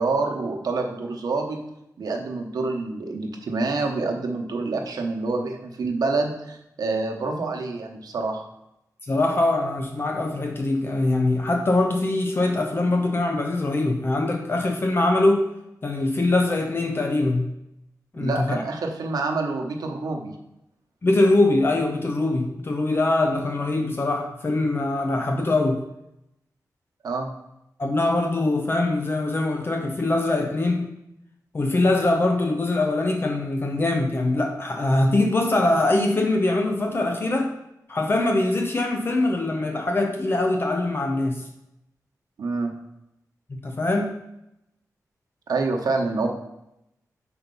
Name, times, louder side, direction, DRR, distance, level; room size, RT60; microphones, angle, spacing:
voice 1, 0.0-1.6 2.0-8.4 18.2-20.3 27.0-27.3 42.4-42.7 45.5-46.3, right 3 dB, 80° right, 2 dB, 1.0 m, -27 dB
voice 2, 9.1-15.5 15.8-17.5 18.1-18.6 21.0-25.8 27.8-30.9 31.5-37.5 37.9-41.4 43.6-44.1, left 2 dB, 35° left, 4 dB, 0.6 m, -22 dB
5.3 x 4.4 x 5.4 m, 0.85 s
wide cardioid pair, 125°, 6 cm